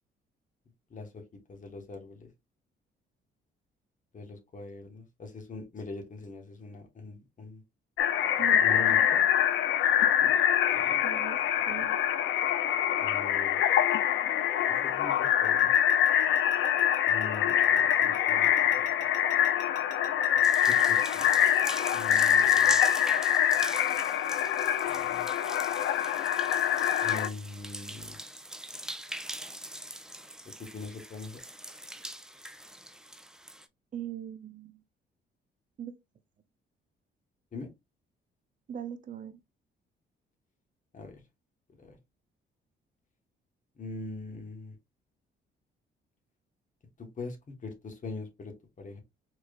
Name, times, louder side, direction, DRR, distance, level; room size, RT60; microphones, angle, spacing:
voice 1, 0.9-1.2 1.5-2.3 4.1-7.6 8.6-9.2 10.2-10.3 10.7-11.0 13.0-13.6 14.7-15.7 17.0-19.0 20.7-21.3 21.9-22.8 24.8-25.3 27.0-28.2 30.4-31.4 37.5-37.7 40.9-41.2 41.8-42.0 43.8-44.7 47.0-49.0, left 3 dB, 40° left, 1.3 m, -42 dB
sound 1, 8.0-27.3, left 10 dB, 80° left, 0.5 m, -25 dB
voice 2, 8.4-9.1 11.0-12.0 33.9-34.8 35.8-35.9 38.7-39.4, right 10 dB, 40° right, 0.7 m, -40 dB
sound 2, 15.1-20.4, right 4 dB, 75° right, 1.0 m, -51 dB
sound 3, 20.4-33.7, right 1 dB, 5° right, 0.4 m, -41 dB
4.5 x 3.1 x 2.4 m
cardioid pair, 90°, 20 cm